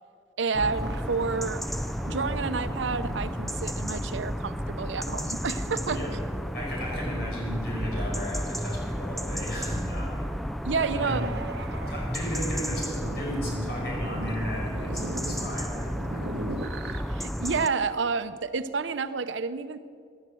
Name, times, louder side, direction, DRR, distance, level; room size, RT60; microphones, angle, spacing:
voice 1, 0.4-1.6 2.1-6.0 10.6-11.3 17.1-19.8, right 4 dB, 85° right, 13 dB, 0.7 m, -29 dB
sound 1, 0.5-17.7, equal, ahead, 0.3 m, -32 dB
sound 2, 0.8-3.9 5.2-6.8 7.2-7.6 8.0-8.6 9.2-9.3 10.6-17.0, right 2 dB, 70° right, 1.1 m, -40 dB
voice 2, 6.5-10.2 10.7-11.2 11.9-16.2, equal, 55° left, -2 dB, 5.5 m, -35 dB
16.5 x 10.5 x 7.6 m, 2.3 s
head